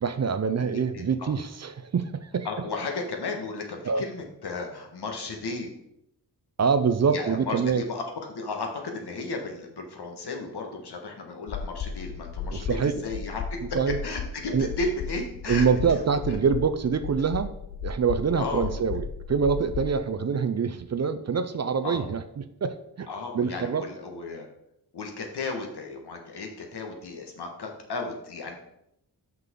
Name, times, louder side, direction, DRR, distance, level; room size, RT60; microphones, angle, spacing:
voice 1, 0.0-2.5 3.9-4.0 6.6-7.8 12.5-12.9 13.7-14.0 14.5-14.7 15.5-17.5 17.8-23.1 23.3-23.8, right 6 dB, 40° right, 10 dB, 0.5 m, -25 dB
voice 2, 0.7-1.3 2.4-5.7 7.1-13.6 13.9-15.7 16.3-16.4 18.4-18.8 21.8-22.0 23.1-24.5 24.9-28.6, left 3 dB, 65° left, 3 dB, 1.4 m, -34 dB
sound 1, 11.5-20.0, left 6 dB, 50° left, 0.5 m, -35 dB
5.8 x 5.7 x 3.7 m, 0.78 s
cardioid pair, 60°, 42 cm